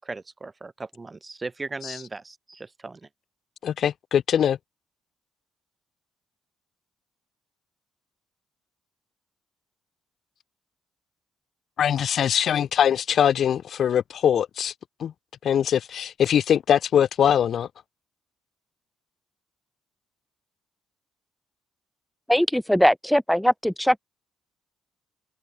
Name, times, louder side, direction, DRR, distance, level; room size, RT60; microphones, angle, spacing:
voice 1, 0.0-3.1, right 3 dB, 25° right, 4.3 m, -37 dB
voice 2, 3.6-4.6 11.8-14.7 15.0-15.1 15.4-17.7, left 9 dB, 60° left, 0.6 m, -22 dB
voice 3, 22.3-24.0, equal, ahead, 0.3 m, -20 dB
open air
cardioid pair, 90°, 0 cm